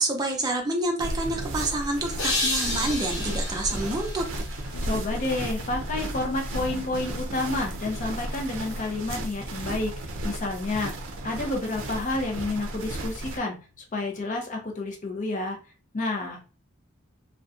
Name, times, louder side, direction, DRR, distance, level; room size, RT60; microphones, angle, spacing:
voice 1, 0.0-4.3, right 2 dB, 20° right, 2 dB, 0.5 m, -28 dB
sound 1, 1.0-13.4, right 1 dB, 70° right, 0.5 m, -34 dB
sound 2, 2.2-5.3, left 2 dB, 60° left, 0.9 m, -31 dB
sound 3, 4.7-14.8, left 3 dB, 90° left, 0.4 m, -48 dB
voice 2, 4.8-13.7 13.9-15.6 15.9-16.4, left 2 dB, 40° left, 1 dB, 0.6 m, -30 dB
2.5 x 2.1 x 2.4 m, 0.34 s
head